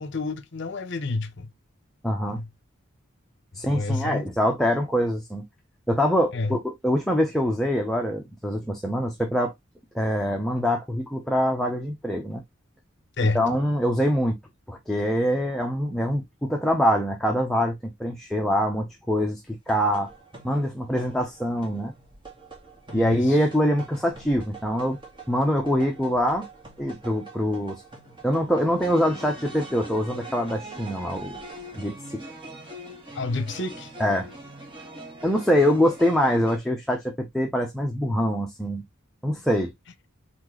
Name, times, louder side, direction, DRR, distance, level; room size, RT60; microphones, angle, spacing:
voice 1, 0.0-1.5 2.3-2.5 3.6-4.3 6.3-6.6 13.2-13.6 22.9-23.4 33.1-33.9, left 3 dB, 60° left, 0.8 m, -29 dB
voice 2, 2.0-2.4 3.5-5.4 5.9-9.5 9.9-12.4 13.3-14.4 14.7-17.7 18.0-20.1 20.4-21.9 22.9-25.0 25.3-26.4 26.8-27.8 28.2-31.4 31.7-32.2 34.0-34.3 35.2-38.8 39.2-39.7, equal, ahead, 0.8 m, -24 dB
sound 1, 19.7-36.6, right 2 dB, 25° right, 1.6 m, -43 dB
4.3 x 3.9 x 3.1 m
head